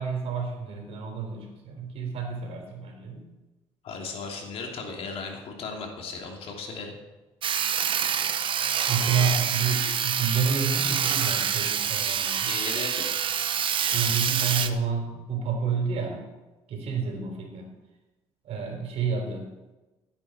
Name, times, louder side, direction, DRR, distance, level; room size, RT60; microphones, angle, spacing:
voice 1, 0.0-3.3 8.9-12.5 13.9-16.3 16.7-17.7 18.4-19.6, right 5 dB, 70° right, 2 dB, 3.8 m, -29 dB
voice 2, 3.8-6.9 9.0-9.3 12.4-13.0, left 4 dB, 65° left, 1 dB, 3.0 m, -36 dB
Sawing, 7.4-14.7, right 8 dB, 50° right, 0.9 m, -26 dB
16.0 x 8.9 x 4.4 m, 1.1 s
cardioid pair, 90°, 11 cm